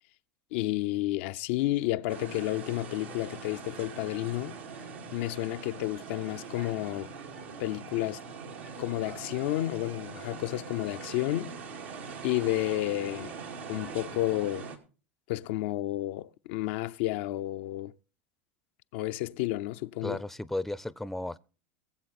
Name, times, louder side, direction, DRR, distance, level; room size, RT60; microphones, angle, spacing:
voice 1, 0.5-4.6 5.1-7.1 7.6-8.2 8.8-11.5 12.2-13.4 13.7-14.7 15.3-17.9 18.9-20.2, left 16 dB, 65° left, 0.5 m, -31 dB
sound 1, 2.1-14.8, right 5 dB, 80° right, 2.3 m, -42 dB
voice 2, 20.0-21.4, left 1 dB, 5° left, 0.6 m, -34 dB
21.5 x 7.6 x 4.2 m
hypercardioid pair, 90°, 6 cm